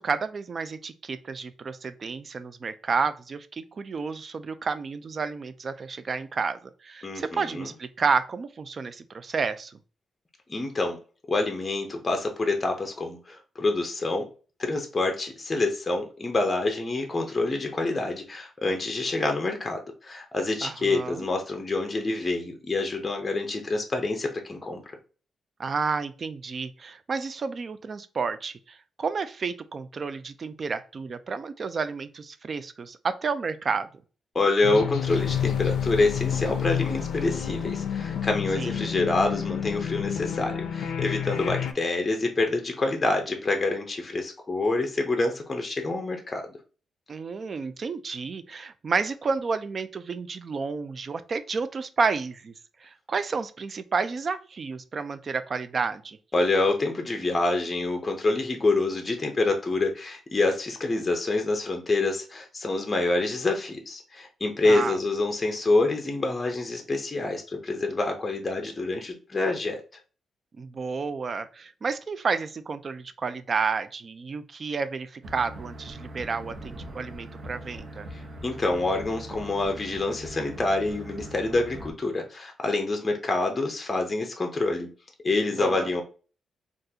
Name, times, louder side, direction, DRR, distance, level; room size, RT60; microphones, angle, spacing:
voice 1, 0.0-9.8 20.6-21.3 25.6-33.9 38.6-38.9 47.1-52.5 52.8-56.2 64.6-65.0 70.6-78.1 85.6-85.9, right 5 dB, 40° right, 12 dB, 0.3 m, -31 dB
voice 2, 7.0-7.7 10.5-11.0 11.3-14.3 14.6-24.8 34.3-46.6 56.3-69.8 78.1-84.9 85.2-86.0, left 2 dB, 20° left, 3 dB, 0.5 m, -27 dB
sound 1, 34.6-41.7, left 8 dB, 80° left, 0.4 m, -29 dB
sound 2, 75.2-81.9, right 1 dB, 75° right, 0.9 m, -41 dB
3.7 x 2.4 x 2.7 m, 0.37 s
cardioid pair, 130°, 0 cm